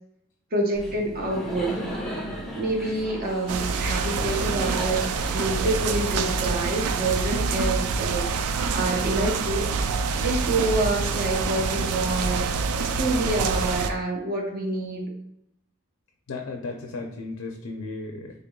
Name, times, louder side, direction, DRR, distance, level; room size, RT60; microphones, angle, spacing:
voice 1, 0.5-1.8 2.5-9.6 10.2-12.5 13.0-15.1, right 2 dB, 45° right, 0 dB, 0.7 m, -27 dB
Laughter, 0.8-6.6, equal, ahead, 0.5 m, -36 dB
sound 1, 3.5-13.9, right 4 dB, 90° right, 0.3 m, -26 dB
voice 2, 16.3-18.3, left 3 dB, 70° left, 1 dB, 0.5 m, -35 dB
3.6 x 3.4 x 2.2 m, 0.81 s
head